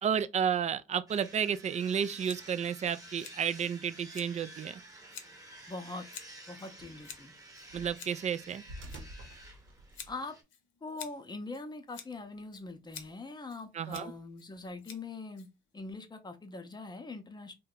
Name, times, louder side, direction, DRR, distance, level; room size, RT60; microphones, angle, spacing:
voice 1, 0.0-4.7 7.7-8.6 13.7-14.1, right 8 dB, 35° right, 0.4 m, -32 dB
sound 1, 1.1-10.4, right 1 dB, 20° right, 0.9 m, -51 dB
sound 2, 1.4-10.2, right 1 dB, 80° right, 0.8 m, -54 dB
Scissors, 2.2-15.9, left 7 dB, 75° left, 0.7 m, -52 dB
voice 2, 5.7-6.1 6.5-7.3 10.1-10.3 10.8-15.5 15.7-17.5, left 3 dB, 20° left, 0.7 m, -42 dB
2.8 x 2.2 x 3.7 m
cardioid pair, 90°, 20 cm